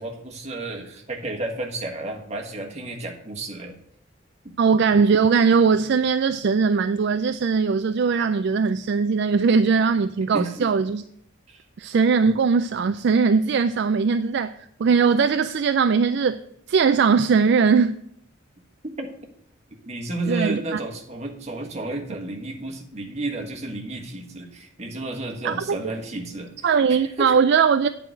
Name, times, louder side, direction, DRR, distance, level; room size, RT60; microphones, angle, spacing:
voice 1, 0.0-3.7 4.4-4.5 10.3-10.5 11.5-11.6 12.2-12.3 19.0-19.1 19.9-26.5 27.2-27.3, right 2 dB, 35° right, 1.5 m, -32 dB
voice 2, 4.6-11.0 11.8-16.4 16.7-18.0 20.3-20.8 25.4-25.6 25.8-25.9 26.6-27.9, right 5 dB, 55° right, 0.3 m, -20 dB
9.0 x 4.8 x 7.5 m
head